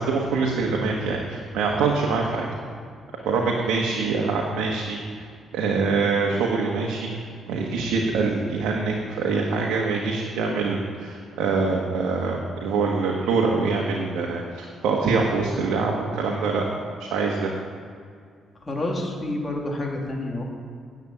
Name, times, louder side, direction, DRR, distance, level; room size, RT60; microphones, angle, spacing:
voice 1, 0.0-2.5 3.2-5.3 5.5-16.6 17.0-17.5, right 4 dB, 90° right, -1 dB, 1.3 m, -24 dB
voice 2, 18.7-20.4, left 1 dB, 20° left, -1 dB, 2.7 m, -28 dB
9.5 x 7.2 x 8.5 m, 2.1 s
cardioid pair, 90°, 0 cm